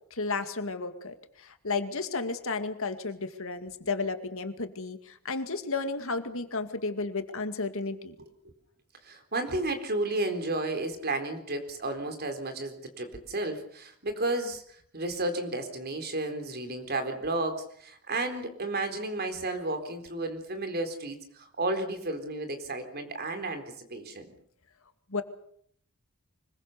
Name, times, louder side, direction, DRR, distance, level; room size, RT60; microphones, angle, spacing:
voice 1, 0.1-8.2 25.1-25.2, left 3 dB, 65° left, 8 dB, 2.2 m, -33 dB
voice 2, 9.0-24.3, right 2 dB, 50° right, 7 dB, 4.1 m, -32 dB
25.0 x 22.0 x 6.8 m, 0.64 s
head